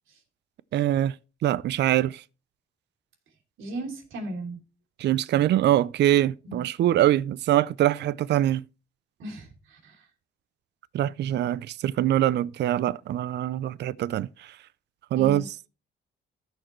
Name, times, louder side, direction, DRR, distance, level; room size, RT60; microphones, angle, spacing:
voice 1, 0.7-1.1 1.4-2.2 5.0-8.6 10.9-14.5 15.1-15.7, right 13 dB, 60° right, 0.4 m, -24 dB
voice 2, 3.6-4.6 6.4-6.6 9.2-10.0 15.1-15.5, right 1 dB, 80° right, 3.0 m, -36 dB
15.0 x 6.6 x 3.1 m
cardioid pair, 90°, 20 cm